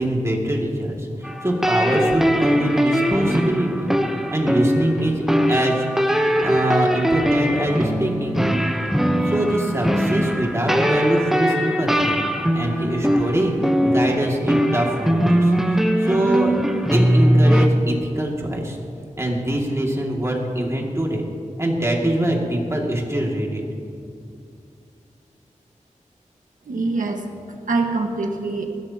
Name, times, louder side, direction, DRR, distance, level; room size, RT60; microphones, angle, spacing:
voice 1, 0.0-4.0 4.3-8.4 9.2-12.2 12.5-16.6 16.9-18.8 19.2-21.2 21.6-23.6, right 1 dB, 20° right, -1 dB, 2.4 m, -23 dB
sound 1, 1.2-17.7, equal, 5° right, 0.9 m, -20 dB
voice 2, 26.6-28.7, right 3 dB, 90° right, 2 dB, 1.5 m, -25 dB
20.5 x 16.0 x 3.0 m, 2.5 s
wide cardioid pair, 95°, 13 cm